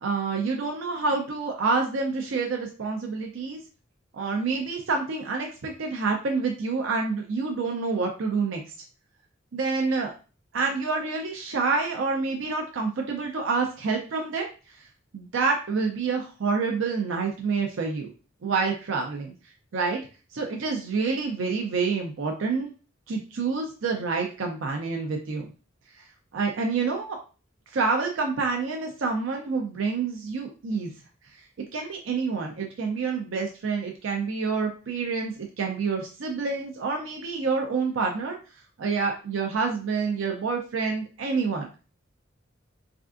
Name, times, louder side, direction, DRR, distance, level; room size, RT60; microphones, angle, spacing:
voice 1, 0.0-3.6 4.1-8.6 9.5-10.1 10.5-14.5 15.1-18.1 18.4-19.4 19.7-20.0 20.3-22.7 23.1-25.5 26.0-26.1 26.3-27.2 27.7-30.9 31.7-38.4 38.8-41.7, right 4 dB, 75° right, 1 dB, 0.5 m, -27 dB
3.4 x 2.4 x 2.4 m, 0.34 s
head